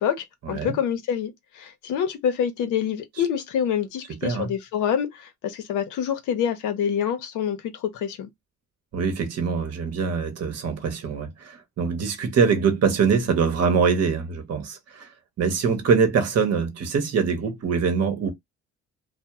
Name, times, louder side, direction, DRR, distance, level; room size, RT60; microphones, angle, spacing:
voice 1, 0.0-8.3, left 8 dB, 85° left, 0.6 m, -26 dB
voice 2, 4.2-4.5 8.9-15.1 15.4-18.3, right 6 dB, 55° right, 0.8 m, -23 dB
2.2 x 2.0 x 2.9 m
cardioid pair, 90°, 30 cm